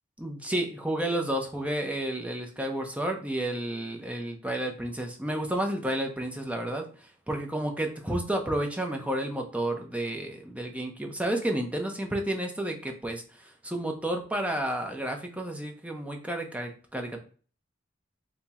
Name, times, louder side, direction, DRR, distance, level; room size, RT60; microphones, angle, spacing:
voice 1, 0.2-17.2, right 1 dB, 5° right, 3 dB, 0.6 m, -31 dB
4.3 x 2.0 x 3.4 m, 0.39 s
head